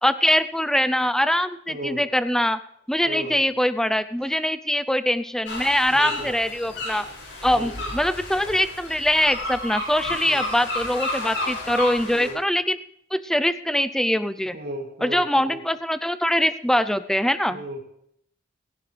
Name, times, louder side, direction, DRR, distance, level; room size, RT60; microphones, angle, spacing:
voice 1, 0.0-2.6 2.9-7.1 7.4-12.8 13.1-14.6 15.0-17.6, equal, 5° left, 13 dB, 0.5 m, -23 dB
voice 2, 1.7-2.0 3.0-3.4 5.9-6.3 7.5-7.9 10.0-10.4 12.1-12.4 14.5-15.6 17.5-17.8, right 1 dB, 55° right, -1 dB, 2.9 m, -35 dB
sound 1, 5.5-12.3, left 2 dB, 65° left, 6.2 m, -32 dB
16.5 x 16.5 x 3.4 m, 0.69 s
head